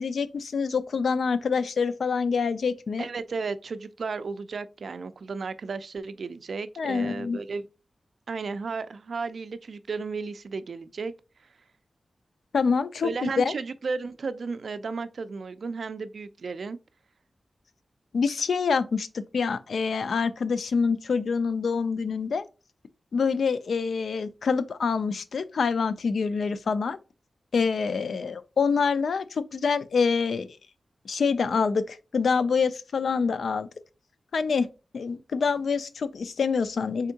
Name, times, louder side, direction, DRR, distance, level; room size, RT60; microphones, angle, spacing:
voice 1, 0.0-3.1 6.8-7.4 12.5-13.5 18.1-22.4 23.1-27.0 27.5-30.6 31.1-33.7 34.3-34.7 34.9-37.1, left 5 dB, 85° left, 0.4 m, -26 dB
voice 2, 3.0-7.6 8.3-11.1 11.4-11.5 13.0-16.8, right 4 dB, 65° right, 0.3 m, -34 dB
4.3 x 3.6 x 2.7 m
wide cardioid pair, 135°, 0 cm